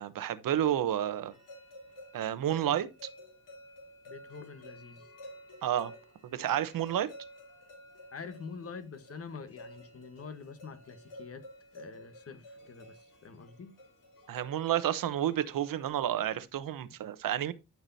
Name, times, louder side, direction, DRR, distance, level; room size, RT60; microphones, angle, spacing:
voice 1, 0.0-1.3 2.1-2.9 5.6-5.9 6.3-7.1 14.3-17.5, right 11 dB, 70° right, 1.0 m, -30 dB
sound 1, 1.3-15.9, equal, 65° left, 3.6 m, -52 dB
voice 2, 4.1-5.1 8.1-11.4 11.7-13.7, left 5 dB, 40° left, 1.3 m, -46 dB
12.5 x 5.9 x 2.8 m
cardioid pair, 110°, 34 cm